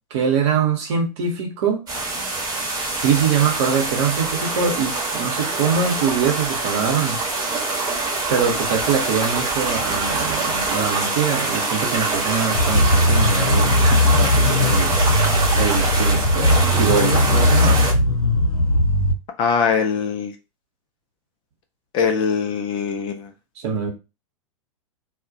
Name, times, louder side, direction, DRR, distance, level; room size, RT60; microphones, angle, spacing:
voice 1, 0.1-1.8 3.0-7.2 8.3-15.0 15.5-17.9 23.6-23.9, right 6 dB, 55° right, 0.9 m, -23 dB
sound 1, 1.9-17.9, right 3 dB, 25° right, 1.0 m, -24 dB
sound 2, 12.5-19.1, left 1 dB, 80° left, 0.7 m, -18 dB
voice 2, 19.4-20.3 21.9-23.3, left 6 dB, 30° left, 0.3 m, -22 dB
2.2 x 2.1 x 2.6 m
figure-of-eight pair, 100°, 18 cm